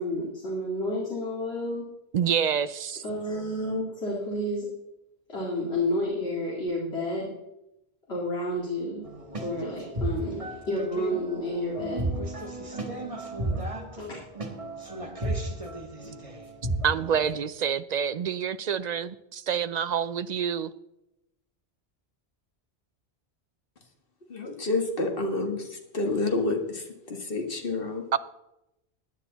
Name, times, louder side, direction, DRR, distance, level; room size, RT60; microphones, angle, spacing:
voice 1, 0.0-1.9 3.0-4.7 5.3-7.4 8.1-9.1 9.4-12.1 14.0-14.2, left 1 dB, 75° left, 2.7 m, -30 dB
voice 2, 2.1-3.0 16.8-20.7 28.1-28.2, right 8 dB, 55° right, 0.5 m, -27 dB
sound 1, 9.0-17.3, right 1 dB, 30° right, 1.6 m, -34 dB
voice 3, 24.3-28.0, left 2 dB, 60° left, 1.9 m, -29 dB
16.0 x 10.5 x 4.0 m
omnidirectional pair, 1.1 m